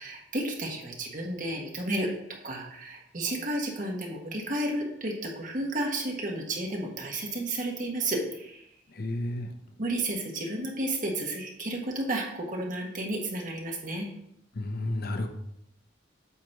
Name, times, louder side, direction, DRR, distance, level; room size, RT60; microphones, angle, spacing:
voice 1, 0.0-8.6 9.8-14.1, right 1 dB, 45° right, 0 dB, 1.5 m, -32 dB
voice 2, 9.0-9.5 14.6-15.3, left 1 dB, 55° left, 6 dB, 0.7 m, -31 dB
8.3 x 3.0 x 6.1 m, 0.76 s
head